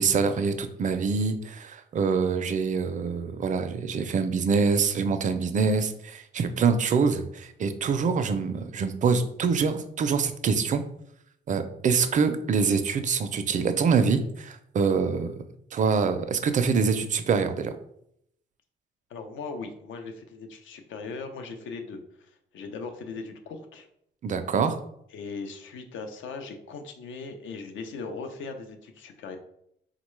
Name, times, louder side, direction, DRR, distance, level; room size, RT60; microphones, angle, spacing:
voice 1, 0.0-10.8 11.5-15.4 15.7-17.7 24.2-24.8, right 5 dB, 40° right, 9 dB, 0.4 m, -25 dB
voice 2, 19.1-23.9 25.1-29.4, left 4 dB, 75° left, 6 dB, 0.6 m, -39 dB
3.7 x 2.2 x 3.1 m, 0.74 s
cardioid pair, 90°, 20 cm